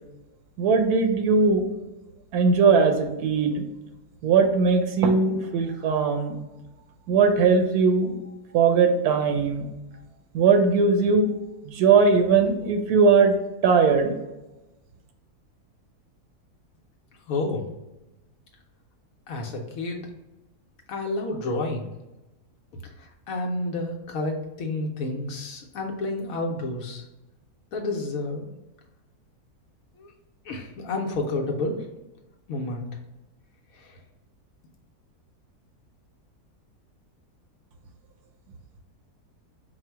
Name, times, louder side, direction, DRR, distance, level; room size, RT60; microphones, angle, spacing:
voice 1, 0.6-1.6 2.3-3.7 4.2-6.4 7.1-8.1 8.5-9.7 10.3-11.3 11.7-13.4 13.6-14.1, right 5 dB, 80° right, 6 dB, 1.1 m, -20 dB
voice 2, 17.3-17.7 19.3-20.1 20.9-21.9 23.0-27.0 27.7-28.5 30.0-30.1 30.5-31.9 32.5-32.9 33.7-33.9, left 2 dB, 70° left, 1 dB, 1.0 m, -30 dB
4.3 x 2.0 x 4.4 m, 1.0 s
omnidirectional pair, 1.6 m